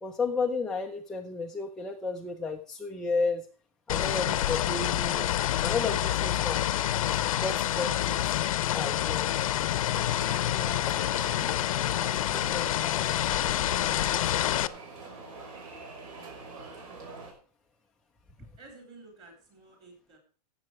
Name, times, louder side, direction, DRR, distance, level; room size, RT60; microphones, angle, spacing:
voice 1, 0.0-3.5 3.9-6.7 7.4-8.4 8.7-9.3 10.9-11.5 12.3-12.7, left 4 dB, 5° left, 1 dB, 0.4 m, -33 dB
sound 1, 3.9-14.7, left 12 dB, 60° left, 0.7 m, -27 dB
sound 2, 9.9-17.3, right 3 dB, 55° right, 5.6 m, -45 dB
voice 2, 13.6-14.6 16.5-16.8 18.6-20.2, right 3 dB, 20° right, 3 dB, 3.9 m, -53 dB
15.5 x 7.6 x 4.6 m, 0.41 s
supercardioid pair, 170°, 20 cm